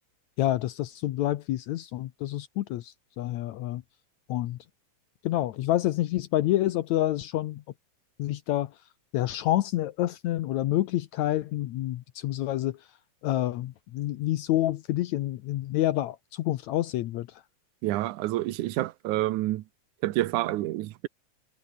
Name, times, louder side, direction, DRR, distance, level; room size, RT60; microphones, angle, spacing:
voice 1, 0.4-3.8 4.3-4.6 5.2-7.6 8.2-8.7 9.1-12.8 13.2-17.4, left 14 dB, 75° left, 2.1 m, -28 dB
voice 2, 17.8-19.6 20.0-21.1, right 16 dB, 90° right, 2.3 m, -28 dB
omnidirectional pair, 3.4 m